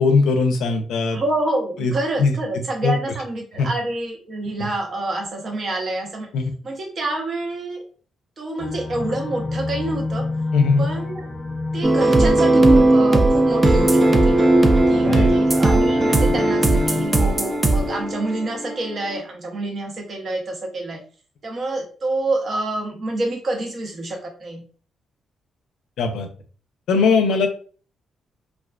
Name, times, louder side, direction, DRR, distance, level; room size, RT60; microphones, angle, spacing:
voice 1, 0.0-1.2 1.8-1.9 2.2-2.3 2.8-2.9 3.6-3.7 6.3-6.5 10.5-10.9 15.0-15.3 26.0-26.3 26.9-27.5, left 4 dB, 85° left, 5 dB, 0.5 m, -19 dB
voice 2, 1.1-6.3 6.6-7.8 8.4-10.3 10.8-11.2 11.7-14.4 14.9-21.0 21.4-24.6, right 2 dB, 45° right, 2 dB, 0.7 m, -27 dB
sound 1, 8.6-17.1, left 2 dB, 30° left, 0.6 m, -29 dB
sound 2, 11.8-19.2, right 2 dB, 25° right, 0.3 m, -17 dB
2.3 x 2.2 x 2.4 m, 0.40 s
cardioid pair, 105°, 0 cm